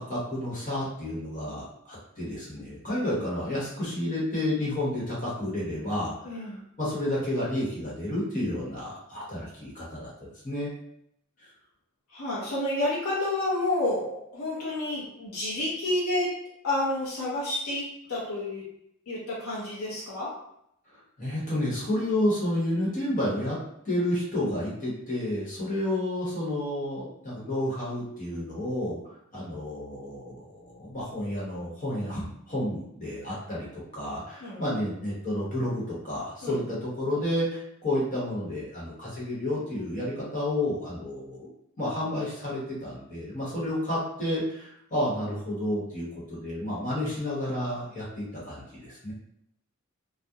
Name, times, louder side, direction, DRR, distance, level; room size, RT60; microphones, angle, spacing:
voice 1, 0.0-6.5 6.8-10.7 21.2-23.6 23.8-29.0 29.3-41.5 41.8-49.1, left 1 dB, 40° left, -7 dB, 1.0 m, -31 dB
voice 2, 6.2-6.6 12.1-16.3 16.6-18.6 19.1-20.3 34.4-34.6 36.4-36.6, left 1 dB, 80° left, -5 dB, 0.7 m, -30 dB
2.3 x 2.0 x 2.7 m, 0.75 s
head